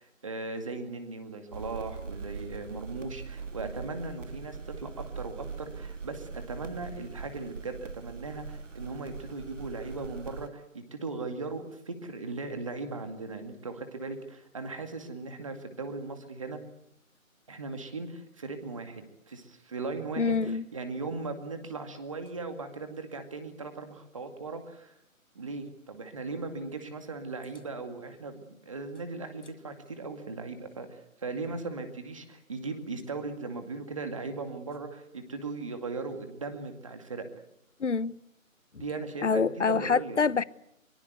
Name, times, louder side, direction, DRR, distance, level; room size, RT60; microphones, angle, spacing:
voice 1, 0.0-16.6 17.5-24.9 25.3-37.3 38.7-40.2, right 3 dB, 25° right, 2.2 m, -38 dB
sound 1, 1.5-10.5, right 4 dB, 65° right, 1.6 m, -41 dB
voice 2, 20.2-20.6 37.8-38.2 39.2-40.4, left 5 dB, 60° left, 0.9 m, -26 dB
24.0 x 23.5 x 8.1 m
figure-of-eight pair, 175°, 41 cm